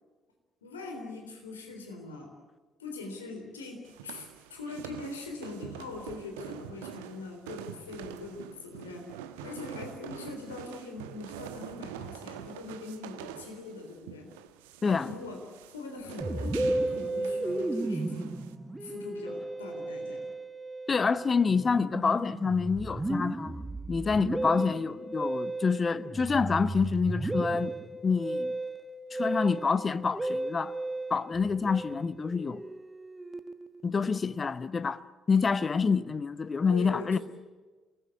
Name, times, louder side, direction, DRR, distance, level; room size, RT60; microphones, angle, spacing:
voice 1, 0.6-2.3 2.8-9.1 9.4-14.3 14.8-15.4 15.7-18.3 18.8-20.3 36.7-37.2, left 3 dB, 80° left, 3.7 m, -42 dB
sound 1, 3.8-18.5, right 10 dB, 70° right, 1.1 m, -45 dB
Musical instrument, 16.2-33.8, right 2 dB, 15° right, 1.3 m, -34 dB
voice 2, 20.9-23.6 23.9-27.7 28.0-28.5 29.1-30.7 31.1-32.6 33.8-35.0 35.3-37.2, left 5 dB, 35° left, 0.9 m, -27 dB
27.5 x 19.5 x 8.3 m
figure-of-eight pair, 45°, 0 cm